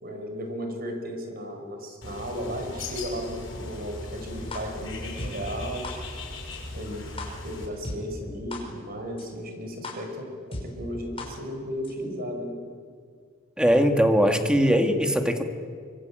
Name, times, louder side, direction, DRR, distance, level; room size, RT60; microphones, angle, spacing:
voice 1, 0.0-5.9 6.7-7.1 7.4-12.6, equal, 50° right, 4 dB, 5.5 m, -35 dB
Bird, 2.0-7.7, left 2 dB, 85° left, 6.1 m, -38 dB
sound 1, 4.5-4.6 5.2-5.3 5.8-5.9 6.5-6.6 7.2-7.3 7.8-8.0 8.5-8.6 9.2-9.3 9.8-9.9 10.5-10.6 11.2-11.3 11.8-11.9, left 2 dB, 30° left, 5.7 m, -34 dB
voice 2, 13.6-15.4, equal, 5° right, 5 dB, 2.0 m, -20 dB
25.0 x 24.5 x 9.0 m, 2.1 s
head